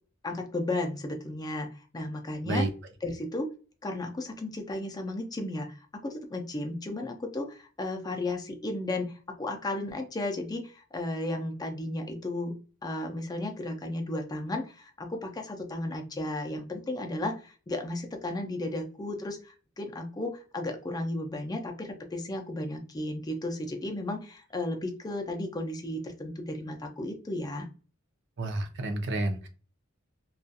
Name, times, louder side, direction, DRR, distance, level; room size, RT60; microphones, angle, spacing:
voice 1, 0.2-2.6 3.0-3.5 3.8-12.5 12.8-27.7, left 1 dB, 20° left, 4 dB, 0.4 m, -34 dB
voice 2, 28.4-29.5, right 2 dB, 55° right, 5 dB, 0.5 m, -30 dB
2.3 x 2.3 x 2.6 m, 0.37 s
head